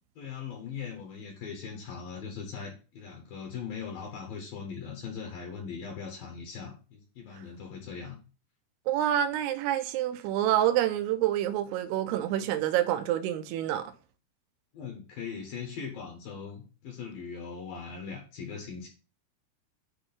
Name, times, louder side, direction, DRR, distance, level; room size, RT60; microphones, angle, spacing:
voice 1, 0.2-8.2 14.7-18.9, left 6 dB, 65° left, 2.7 m, -40 dB
voice 2, 8.9-13.9, right 12 dB, 85° right, 2.5 m, -27 dB
8.8 x 3.0 x 6.0 m
omnidirectional pair, 5.1 m